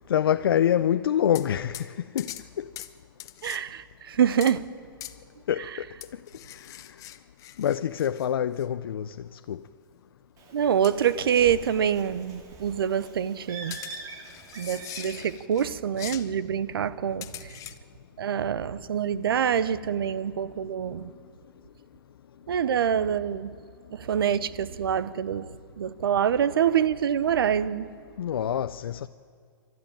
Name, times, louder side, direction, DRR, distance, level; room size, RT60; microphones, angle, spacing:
voice 1, 0.1-2.3 2.6-2.7 5.5-5.9 7.6-9.2 9.5-9.6 28.2-29.1, left 10 dB, 85° left, 0.5 m, -25 dB
sound 1, 1.3-1.5 1.7-1.9 2.2-2.5 2.8-2.9 3.2-3.6 4.4-4.6 5.0-5.2 6.0-8.3 8.6-8.7 10.8-11.2 11.5-11.6 13.7-15.7 16.0-16.3 17.2-17.8, left 13 dB, 25° left, 0.8 m, -42 dB
voice 2, 3.4-4.7 10.5-13.8 14.6-17.6 18.2-21.1 22.5-23.5 23.9-27.9, right 8 dB, 85° right, 0.8 m, -26 dB
Bird, 10.4-15.4, right 4 dB, 30° right, 2.3 m, -44 dB
28.5 x 12.5 x 9.0 m
hypercardioid pair, 140°, 12 cm